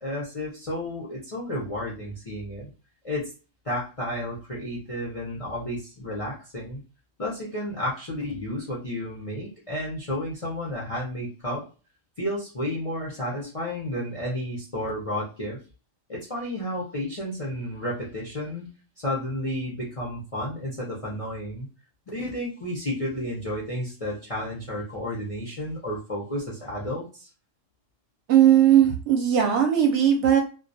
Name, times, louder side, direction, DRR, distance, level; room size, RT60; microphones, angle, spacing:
voice 1, 0.0-2.7 3.0-3.3 3.6-6.8 7.2-11.6 12.2-15.6 16.1-18.7 19.0-21.7 22.1-27.3, left 1 dB, 45° left, -4 dB, 0.5 m, -32 dB
voice 2, 28.3-30.4, right 10 dB, 65° right, 3 dB, 0.8 m, -18 dB
2.2 x 2.2 x 2.6 m, 0.36 s
omnidirectional pair, 1.4 m